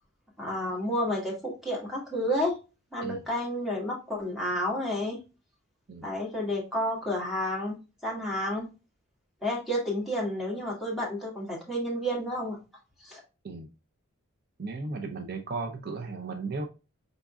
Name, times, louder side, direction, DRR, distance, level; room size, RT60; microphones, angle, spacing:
voice 1, 0.4-2.6 2.9-5.2 6.0-8.7 9.4-12.6 13.0-13.2, equal, ahead, 1.6 m, -30 dB
voice 2, 14.6-16.6, right 3 dB, 50° right, 0.5 m, -35 dB
5.1 x 3.6 x 2.3 m
head